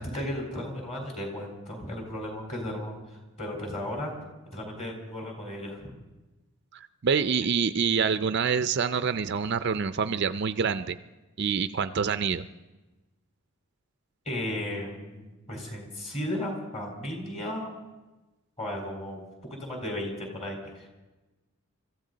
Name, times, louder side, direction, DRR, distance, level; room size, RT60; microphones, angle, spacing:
voice 1, 0.0-4.1 4.5-5.9 14.3-17.7 18.6-20.9, left 1 dB, 30° left, 1 dB, 4.1 m, -35 dB
voice 2, 7.0-11.0 11.4-12.5, right 6 dB, 50° right, 11 dB, 0.4 m, -26 dB
25.5 x 14.5 x 4.0 m, 1.1 s
head